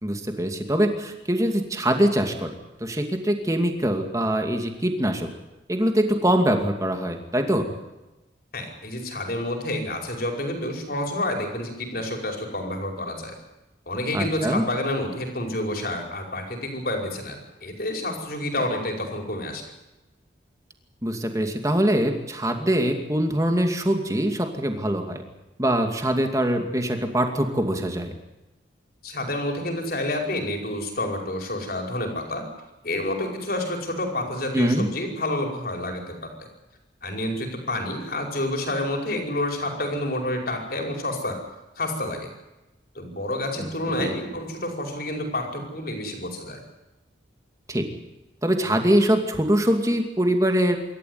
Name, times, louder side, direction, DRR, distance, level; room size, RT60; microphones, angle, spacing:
voice 1, 0.0-2.5 2.8-5.3 5.7-7.7 14.1-14.7 21.0-25.2 25.6-28.1 34.5-34.9 43.6-43.7 44.0-44.1 47.7-47.9 48.4-50.8, right 1 dB, 20° right, 5 dB, 2.5 m, -23 dB
voice 2, 8.5-13.3 13.9-19.6 29.0-32.4 32.8-36.5 37.0-41.4 41.8-42.3 43.0-46.6, left 1 dB, 55° left, 2 dB, 5.2 m, -29 dB
26.5 x 14.0 x 9.6 m, 1.0 s
head